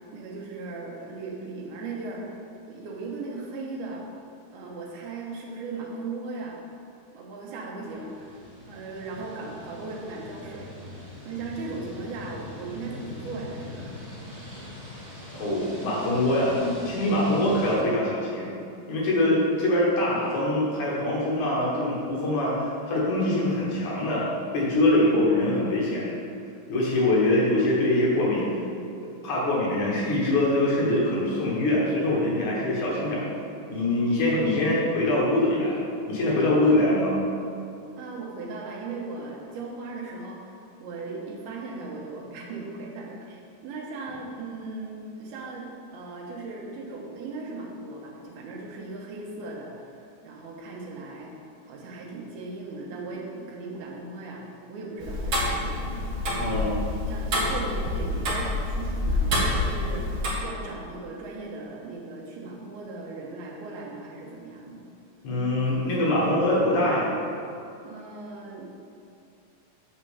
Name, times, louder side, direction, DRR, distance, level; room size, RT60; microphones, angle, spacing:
voice 1, 0.1-2.3 2.7-4.0 4.5-6.7 7.1-14.0 38.0-45.7 45.9-51.4 51.7-56.7 57.1-60.1 60.4-64.9 67.8-68.7, right 3 dB, 85° right, -2 dB, 3.1 m, -38 dB
sound 1, 7.8-17.7, left 2 dB, 30° right, 1.3 m, -42 dB
voice 2, 15.3-18.5 18.9-22.5 22.9-26.1 26.7-28.5 29.2-33.2 33.7-35.8 36.1-37.2 56.4-56.8 65.2-67.2, left 1 dB, 60° left, -5 dB, 2.7 m, -23 dB
Tick-tock, 55.0-60.3, left 1 dB, 50° right, 1.6 m, -27 dB
8.9 x 4.4 x 6.9 m, 2.6 s
omnidirectional pair, 4.4 m